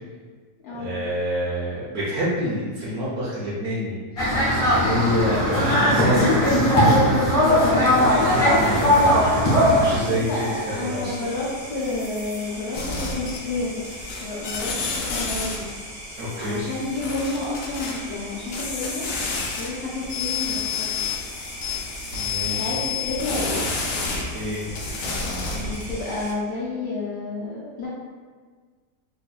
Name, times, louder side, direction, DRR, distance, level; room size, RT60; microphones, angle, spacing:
voice 1, 0.7-6.8 8.3-9.3 9.6-11.2 16.2-16.6 22.1-22.8 24.3-24.6, equal, 70° right, -8 dB, 1.2 m, -27 dB
sound 1, 4.2-10.0, equal, 40° left, 0.9 m, -18 dB
voice 2, 7.4-8.1 10.0-13.8 14.2-15.7 16.4-19.0 19.6-21.2 22.4-23.6 25.5-27.9, left 2 dB, 65° left, -7 dB, 1.1 m, -30 dB
sound 2, 8.1-26.3, equal, 50° right, 0.6 m, -39 dB
sound 3, 12.7-13.6 13.8-15.7 17.0-18.0 18.5-19.7 20.0-24.2 24.7-25.9, left 5 dB, 85° left, 1.3 m, -29 dB
4.2 x 2.7 x 2.3 m, 1.5 s
omnidirectional pair, 1.8 m